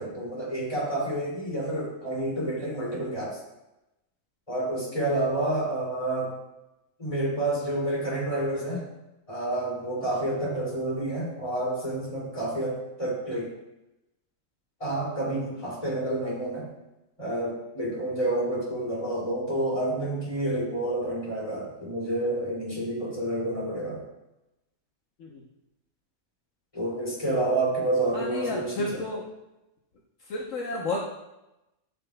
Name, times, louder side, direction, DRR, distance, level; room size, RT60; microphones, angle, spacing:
voice 1, 0.0-3.4 4.5-6.3 7.0-8.8 9.3-13.5 14.8-16.7 17.2-24.0 26.7-29.1, right 1 dB, 25° left, -6 dB, 2.7 m, -29 dB
voice 2, 28.1-29.3 30.3-31.0, left 2 dB, 70° left, -3 dB, 1.3 m, -31 dB
12.5 x 5.4 x 2.3 m, 0.94 s
omnidirectional pair, 1.4 m